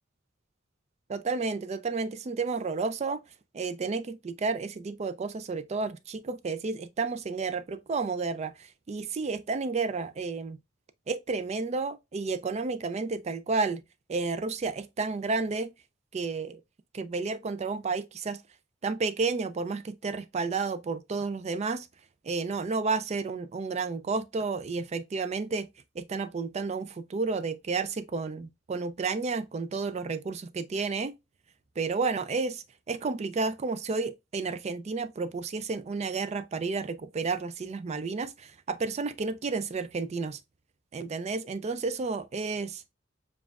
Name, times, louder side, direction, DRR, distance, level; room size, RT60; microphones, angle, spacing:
voice 1, 1.1-3.2 3.5-8.5 8.9-10.6 11.1-13.8 14.1-15.7 16.1-16.6 16.9-18.4 18.8-21.9 22.2-25.7 26.0-31.1 31.8-40.4 40.9-42.7, right 4 dB, 35° right, 0.4 m, -31 dB
7.1 x 2.4 x 2.3 m
head